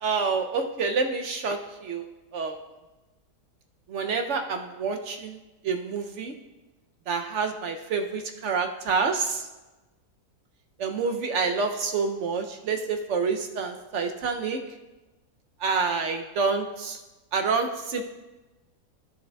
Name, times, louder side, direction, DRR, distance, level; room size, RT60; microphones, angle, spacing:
voice 1, 0.0-2.6 3.9-5.4 5.6-6.3 7.1-9.5 10.8-14.6 15.6-17.0 17.3-18.0, right 4 dB, 65° right, 5 dB, 0.7 m, -28 dB
13.0 x 6.7 x 2.2 m, 1.1 s
omnidirectional pair, 1.6 m